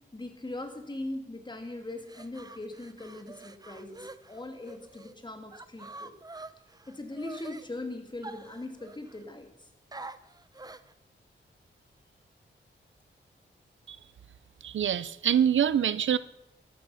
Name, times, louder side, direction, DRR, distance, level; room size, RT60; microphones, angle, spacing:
voice 1, 0.1-6.1 6.9-9.7, left 2 dB, 25° left, 5 dB, 2.6 m, -40 dB
sound 1, 1.9-5.1 5.5-7.7 8.2-9.2 9.9-10.9, right 2 dB, 20° right, 0.8 m, -46 dB
voice 2, 14.6-16.2, right 9 dB, 75° right, 17 dB, 0.6 m, -25 dB
13.5 x 12.0 x 5.8 m, 0.83 s
wide cardioid pair, 90°, 20 cm